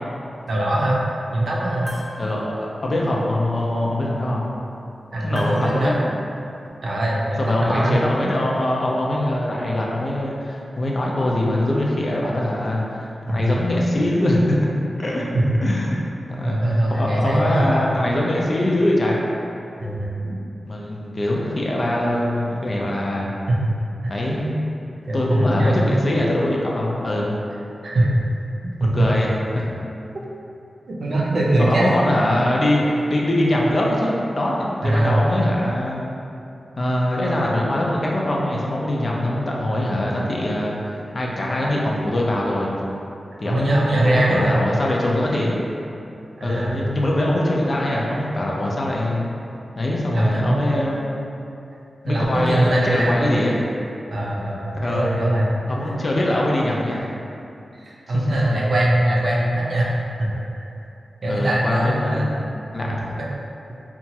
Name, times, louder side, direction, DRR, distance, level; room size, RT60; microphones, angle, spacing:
voice 1, 0.5-1.0 1.3-1.9 5.1-5.9 6.8-8.0 13.3-13.5 15.3-15.5 16.4-17.8 19.8-20.3 23.5-23.7 24.0-24.1 25.0-26.0 27.8-28.2 28.8-28.9 30.9-31.9 34.8-35.2 43.4-44.6 46.4-46.9 50.1-50.6 52.0-53.2 54.1-55.5 55.8-56.0 57.8-60.7 61.2-62.3 62.8-63.0, right 1 dB, 70° right, -4 dB, 0.5 m, -21 dB
sound 1, 1.7-2.6 5.4-6.5, equal, 15° right, 0.8 m, -38 dB
voice 2, 2.2-4.4 5.2-6.0 7.4-14.7 15.0-15.3 15.6-19.2 20.7-23.3 24.1-24.5 25.1-27.3 28.8-29.7 31.6-34.5 34.8-36.0 36.8-42.7 43.4-45.5 46.4-49.3 49.8-51.0 52.0-53.6 54.8-55.1 55.7-57.1 58.1-58.4 61.3-62.9, left 1 dB, 45° left, -3 dB, 0.4 m, -22 dB
2.9 x 2.3 x 2.8 m, 2.7 s
wide cardioid pair, 75°, 0 cm